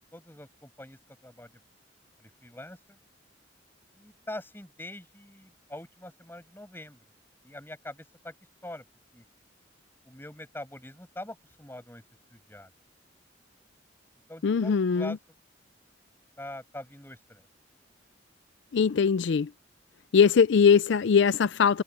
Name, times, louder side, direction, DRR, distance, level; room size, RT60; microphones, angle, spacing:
voice 1, 0.0-1.5 2.2-3.0 3.9-7.0 7.4-8.3 8.6-8.8 9.1-9.2 10.0-12.0 12.3-12.7 14.3-15.2 16.4-17.5, left 1 dB, 10° left, 7.8 m, -43 dB
voice 2, 14.4-15.2 18.7-19.5 20.1-21.8, left 6 dB, 65° left, 0.4 m, -21 dB
head